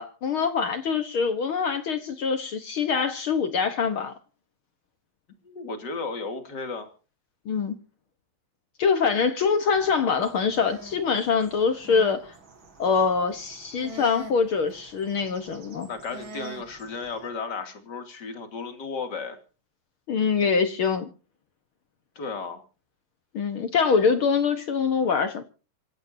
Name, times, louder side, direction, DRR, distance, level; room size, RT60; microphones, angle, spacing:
voice 1, 0.0-4.1 7.4-7.7 8.8-12.3 12.8-15.9 20.1-21.1 23.3-25.4, left 5 dB, 60° left, 1.4 m, -24 dB
voice 2, 5.4-6.9 15.9-19.4 22.1-22.6, left 4 dB, 30° left, 2.8 m, -34 dB
sound 1, 9.7-17.3, right 2 dB, 35° right, 3.0 m, -45 dB
26.5 x 15.0 x 2.8 m
omnidirectional pair, 4.0 m